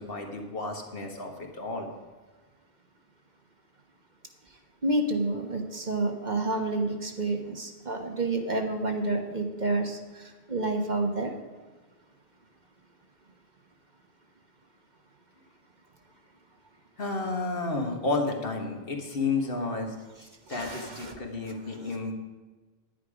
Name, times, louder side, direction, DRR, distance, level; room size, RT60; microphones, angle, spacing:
voice 1, 0.0-1.9 17.0-20.0 20.5-22.1, left 3 dB, 65° left, 2 dB, 1.8 m, -31 dB
voice 2, 4.8-10.0 10.5-11.3 20.5-21.2, right 2 dB, 45° right, 3 dB, 1.4 m, -29 dB
10.5 x 10.0 x 5.0 m, 1.3 s
omnidirectional pair, 1.0 m